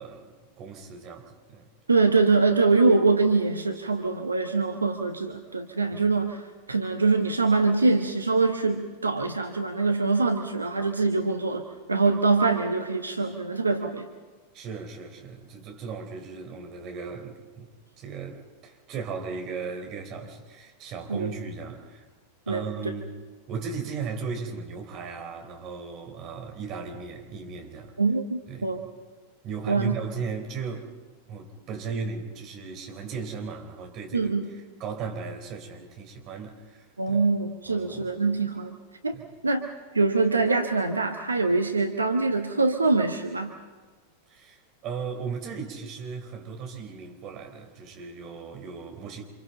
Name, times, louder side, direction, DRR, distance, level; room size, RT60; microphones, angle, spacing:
voice 1, 0.0-1.7 14.5-22.1 22.5-23.2 23.5-27.9 28.5-28.9 29.4-30.9 31.3-37.2 37.7-38.2 39.1-39.2 44.3-49.2, right 5 dB, 35° right, 4.1 m, -37 dB
voice 2, 1.9-6.4 6.7-11.6 11.9-14.1 21.1-21.3 22.5-22.6 28.0-28.8 29.7-30.0 34.1-34.5 37.0-38.8 39.0-39.2 39.4-39.7 39.9-43.5, right 3 dB, 80° right, 1.3 m, -24 dB
30.0 x 27.0 x 4.0 m
figure-of-eight pair, 90°, 0 cm